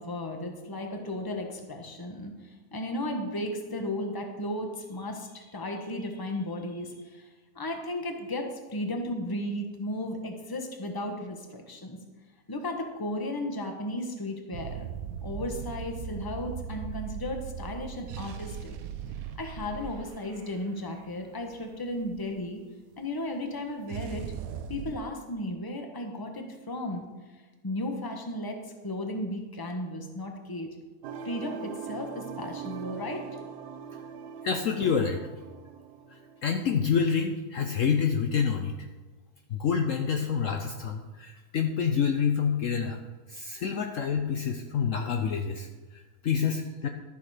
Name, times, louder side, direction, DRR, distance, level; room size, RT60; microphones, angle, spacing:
voice 1, 0.0-7.3 7.5-12.0 12.5-14.9 15.2-18.8 19.4-22.6 23.0-24.3 24.7-27.0 27.6-30.7 31.2-33.3, left 1 dB, 15° left, 3 dB, 1.0 m, -35 dB
sound 1, 14.5-22.3 23.9-25.0, right 8 dB, 70° right, 1.0 m, -39 dB
sound 2, 31.0-36.9, right 6 dB, 85° right, 1.2 m, -41 dB
voice 2, 34.4-35.2 36.4-38.8 39.5-43.0 43.3-45.7 45.9-46.9, left 6 dB, 60° left, 5 dB, 1.0 m, -27 dB
12.5 x 7.0 x 4.9 m, 1.3 s
omnidirectional pair, 1.7 m